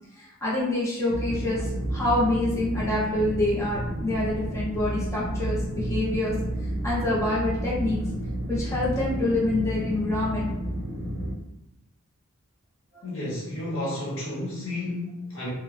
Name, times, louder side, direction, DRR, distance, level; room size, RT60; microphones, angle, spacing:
voice 1, 0.4-1.6 1.9-6.3 6.8-8.0 8.5-10.5, left 2 dB, 15° left, -8 dB, 0.6 m, -26 dB
sound 1, 1.1-11.3, right 1 dB, 85° right, 0.5 m, -31 dB
voice 2, 13.0-15.5, left 1 dB, 65° left, -5 dB, 0.9 m, -32 dB
2.9 x 2.1 x 2.4 m, 0.84 s
head